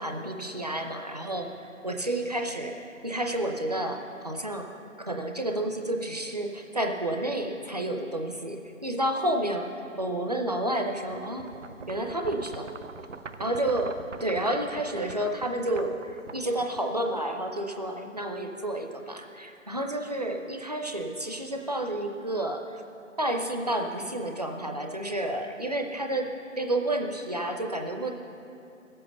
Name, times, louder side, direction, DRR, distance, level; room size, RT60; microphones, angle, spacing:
voice 1, 0.0-4.7 5.1-9.7 10.0-11.5 11.9-12.7 13.4-13.9 14.2-22.8 23.2-26.3 26.6-28.1, right 1 dB, 30° right, 3 dB, 0.6 m, -30 dB
sound 1, 11.1-17.2, right 4 dB, 65° right, 0.7 m, -43 dB
16.0 x 7.7 x 6.8 m, 2.8 s
figure-of-eight pair, 165°, 39 cm